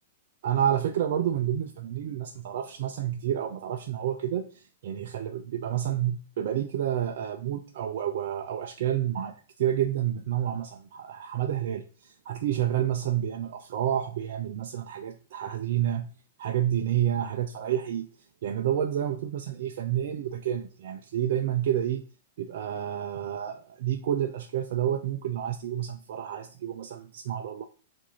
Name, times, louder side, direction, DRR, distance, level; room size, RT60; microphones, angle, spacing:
voice 1, 0.4-16.1 16.4-18.1 18.4-22.1 22.4-27.6, right 10 dB, 60° right, 0.5 m, -29 dB
7.2 x 2.7 x 5.4 m
hypercardioid pair, 110°, 0 cm